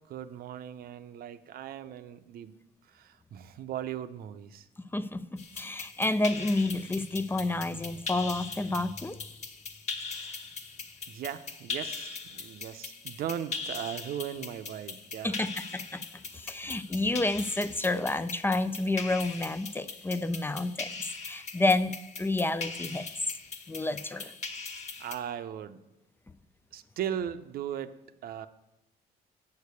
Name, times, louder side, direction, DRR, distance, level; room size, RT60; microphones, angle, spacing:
voice 1, 0.1-2.6 2.9-4.7 10.1-10.4 11.1-15.4 24.1-24.3 25.0-25.8 26.7-28.0 28.2-28.5, right 10 dB, 60° right, 11 dB, 0.7 m, -38 dB
voice 2, 4.9-9.2 15.2-16.0 16.3-20.9 21.2-21.9 22.2-23.1 23.7-24.3, left 2 dB, 15° left, 13 dB, 0.4 m, -29 dB
sound 1, 5.4-25.2, left 4 dB, 45° left, 1.3 m, -40 dB
8.2 x 6.7 x 8.2 m, 0.94 s
cardioid pair, 110°, 17 cm